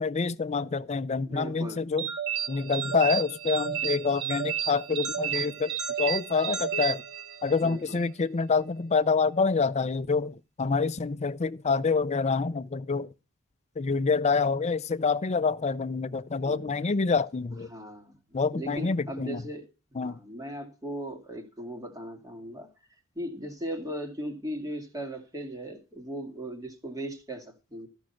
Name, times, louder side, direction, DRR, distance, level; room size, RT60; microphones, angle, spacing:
voice 1, 0.0-2.1 2.5-7.0 7.4-13.1 13.8-17.7 18.3-19.4 20.0-20.2, left 4 dB, 30° left, 0.5 m, -27 dB
voice 2, 1.3-1.8 5.3-5.4 7.6-8.0 16.4-16.8 17.7-18.2 18.5-19.7 19.9-22.7 23.2-27.9, equal, 15° right, 2.3 m, -38 dB
sound 1, 2.0-7.7, right 8 dB, 50° right, 1.9 m, -32 dB
14.0 x 6.2 x 5.8 m
head